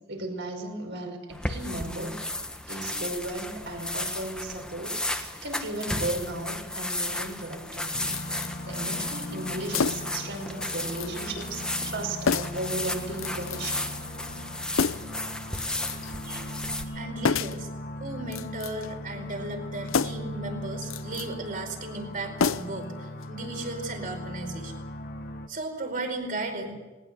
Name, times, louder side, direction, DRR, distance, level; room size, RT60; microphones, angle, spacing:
voice 1, 0.1-2.2 2.7-8.1 8.6-13.9, right 1 dB, 60° right, 4 dB, 5.5 m, -35 dB
sound 1, 1.3-16.8, left 1 dB, 5° left, 1.6 m, -34 dB
sound 2, 7.9-25.5, left 1 dB, 50° left, 1.3 m, -39 dB
sound 3, 8.1-8.5 9.7-10.2 10.6-11.1 11.4-11.5 12.3-12.7 13.2-13.7 14.7-15.2 15.5-16.1 17.2-17.7 18.2-18.9 19.9-20.3 20.8-21.3 22.4-22.9 23.2-23.3, left 5 dB, 85° left, 0.7 m, -29 dB
voice 2, 16.9-17.7 18.0-24.7 25.5-26.7, right 2 dB, 45° right, 4 dB, 4.7 m, -35 dB
20.0 x 19.5 x 8.2 m, 1.2 s
head